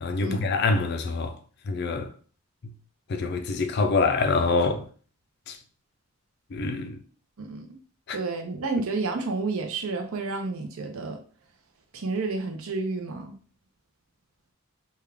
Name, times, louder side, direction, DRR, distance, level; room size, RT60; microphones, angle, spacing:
voice 1, 0.0-1.4 1.7-2.1 3.1-4.8 5.5-5.6 6.5-7.0 8.1-8.2, left 3 dB, 50° left, 0.4 m, -25 dB
voice 2, 7.4-7.8 8.1-11.2 11.9-13.4, right 3 dB, 70° right, 0.6 m, -30 dB
3.5 x 2.3 x 3.3 m
head